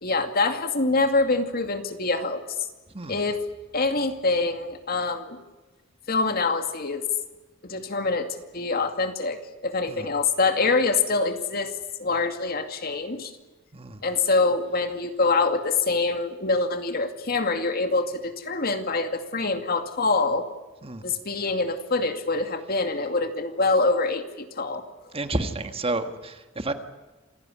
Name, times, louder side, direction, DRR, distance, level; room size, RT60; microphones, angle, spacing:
voice 1, 0.0-2.4 3.1-3.4 3.7-5.4 6.1-7.0 7.6-11.7 12.0-13.3 14.0-20.5 21.0-24.8, left 3 dB, 50° left, 7 dB, 2.3 m, -25 dB
voice 2, 13.7-14.0 20.8-21.0 25.1-26.7, right 2 dB, 30° right, 8 dB, 1.7 m, -30 dB
27.5 x 17.0 x 10.0 m, 1.2 s
head